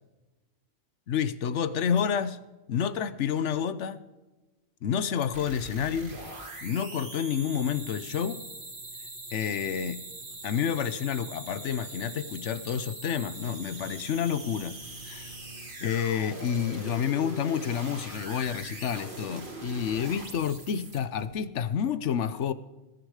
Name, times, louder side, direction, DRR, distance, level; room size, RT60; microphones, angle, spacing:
voice 1, 1.1-2.4 2.7-4.0 4.8-6.2 6.6-8.4 9.3-10.0 10.4-14.7 15.0-15.3 15.8-22.5, left 8 dB, 75° left, 14 dB, 1.1 m, -29 dB
sound 1, 5.3-21.3, right 2 dB, 45° right, 2.4 m, -42 dB
19.5 x 10.0 x 4.9 m, 1.1 s
omnidirectional pair, 1.2 m